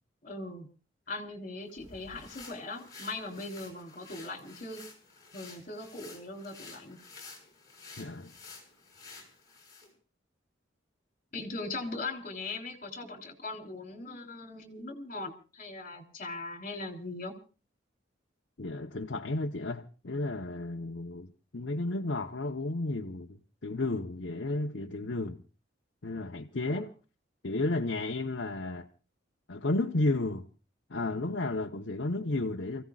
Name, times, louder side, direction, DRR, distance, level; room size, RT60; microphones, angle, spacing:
voice 1, 0.2-0.7 1.1-4.8 5.3-7.0 11.3-17.3 26.7-26.8, left 2 dB, 45° left, 3.6 m, -40 dB
sound 1, 1.7-9.9, left 4 dB, 20° left, 6.0 m, -51 dB
voice 2, 8.0-8.3 18.6-21.3 21.5-25.4 26.0-26.9 27.4-28.9 29.5-30.5 30.9-32.8, left 2 dB, 65° left, 1.0 m, -32 dB
29.5 x 16.0 x 2.4 m
head